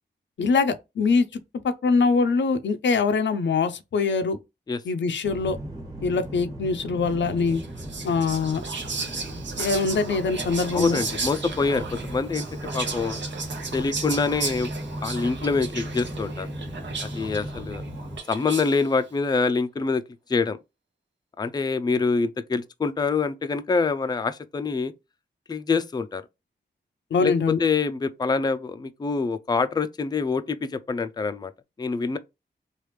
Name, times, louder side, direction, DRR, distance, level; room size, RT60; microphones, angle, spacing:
voice 1, 0.4-1.4 1.8-4.4 4.8-5.6 6.0-7.6 8.0-8.6 9.6-11.0 27.1-27.6, left 4 dB, 85° left, 0.5 m, -23 dB
sound 1, 5.2-18.2, equal, 20° right, 1.3 m, -36 dB
Whispering, 7.5-18.9, right 4 dB, 80° right, 0.8 m, -35 dB
voice 2, 10.7-12.4 12.7-13.2 13.7-14.7 15.0-16.5 17.0-17.8 18.3-20.0 20.3-20.6 21.4-24.9 25.5-26.2 27.2-31.5 31.8-32.2, left 4 dB, 20° left, 0.4 m, -25 dB
3.3 x 2.4 x 3.1 m
wide cardioid pair, 70°, 19 cm